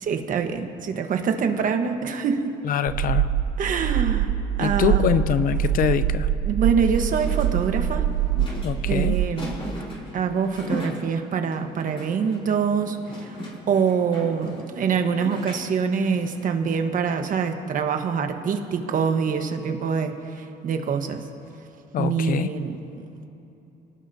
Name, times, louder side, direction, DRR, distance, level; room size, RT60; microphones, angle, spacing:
voice 1, 0.0-2.5 3.6-4.3 4.6-5.1 6.4-8.1 8.9-9.5 10.1-21.3 22.0-23.3, right 6 dB, 50° right, 6 dB, 1.4 m, -25 dB
voice 2, 2.6-3.3 4.6-6.3 8.6-9.2 21.9-22.5, left 9 dB, 55° left, 12 dB, 0.7 m, -24 dB
sound 1, 2.9-9.3, right 10 dB, 85° right, 0.7 m, -24 dB
sound 2, 6.9-16.6, left 1 dB, 35° left, 4.7 m, -38 dB
25.5 x 18.0 x 2.9 m, 3.0 s
cardioid pair, 110°, 17 cm